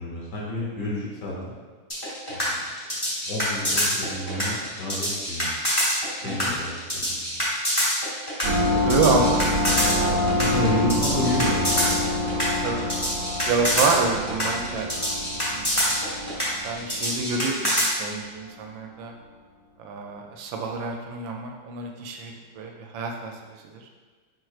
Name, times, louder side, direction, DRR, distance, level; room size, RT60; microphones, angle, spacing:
voice 1, 0.0-1.6 2.3-2.6 3.3-5.5 6.2-7.4 8.9-9.0 10.4-12.0, equal, 65° left, -5 dB, 1.5 m, -30 dB
sound 1, 1.9-17.9, equal, 15° left, 0.9 m, -25 dB
voice 2, 6.2-6.6 8.8-10.3 12.6-12.9 13.5-15.2 15.5-15.9 16.6-19.1 19.8-23.3 23.6-23.8, right 4 dB, 80° right, 2 dB, 1.3 m, -28 dB
sound 2, 8.4-17.6, left 1 dB, 55° right, 1.4 m, -26 dB
4.6 x 4.5 x 2.4 m, 1.5 s
omnidirectional pair, 2.1 m